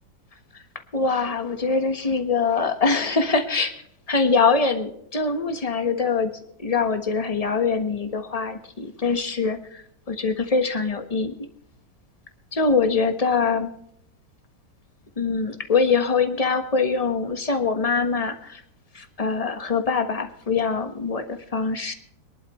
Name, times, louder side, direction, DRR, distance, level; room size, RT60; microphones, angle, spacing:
voice 1, 0.9-6.3 6.6-11.3 12.5-13.7 15.2-18.6 18.9-21.9, left 4 dB, 25° left, 8 dB, 1.2 m, -23 dB
22.5 x 11.5 x 3.1 m, 0.72 s
omnidirectional pair, 1.9 m